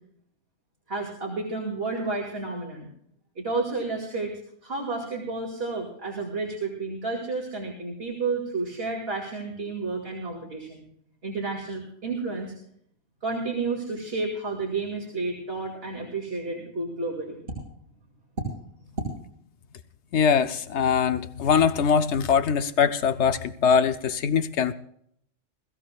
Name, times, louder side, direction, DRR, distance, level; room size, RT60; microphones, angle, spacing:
voice 1, 0.9-2.9 3.4-4.3 4.6-10.8 11.2-12.5 13.2-17.4 18.9-19.0, right 3 dB, 60° right, -1 dB, 2.7 m, -31 dB
voice 2, 20.1-24.7, left 6 dB, 75° left, 11 dB, 0.9 m, -22 dB
21.5 x 15.0 x 2.3 m, 0.67 s
omnidirectional pair, 1.2 m